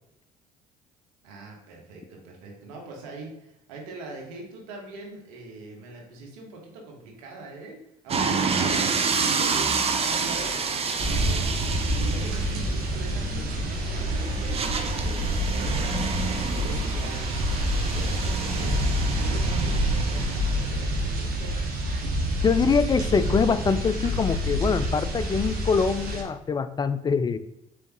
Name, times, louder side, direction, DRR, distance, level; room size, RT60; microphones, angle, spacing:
voice 1, 1.2-7.7 8.0-9.0 9.2-21.6 21.8-22.1, right 2 dB, 85° right, 0 dB, 1.1 m, -42 dB
sound 1, 8.1-20.6, right 5 dB, 35° right, 0.6 m, -29 dB
sound 2, 11.0-26.2, equal, 55° right, 1.2 m, -27 dB
voice 2, 22.4-27.4, left 5 dB, 25° left, 12 dB, 0.3 m, -24 dB
4.4 x 3.4 x 2.9 m, 0.85 s
hypercardioid pair, 65°, 18 cm